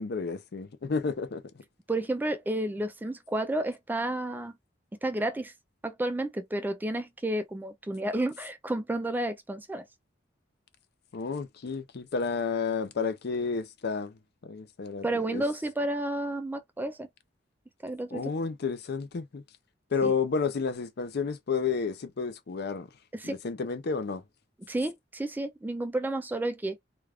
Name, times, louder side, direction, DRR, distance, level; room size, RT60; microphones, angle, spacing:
voice 1, 0.0-1.4 11.1-14.1 14.4-15.1 15.3-15.4 18.1-19.4 19.9-22.9 23.2-24.2, left 5 dB, 60° left, 0.5 m, -31 dB
voice 2, 1.9-4.5 5.0-5.5 5.8-9.8 15.0-17.1 17.8-18.3 20.0-20.1 23.1-23.4 24.7-26.8, right 1 dB, 10° right, 0.3 m, -31 dB
2.4 x 2.3 x 3.3 m
head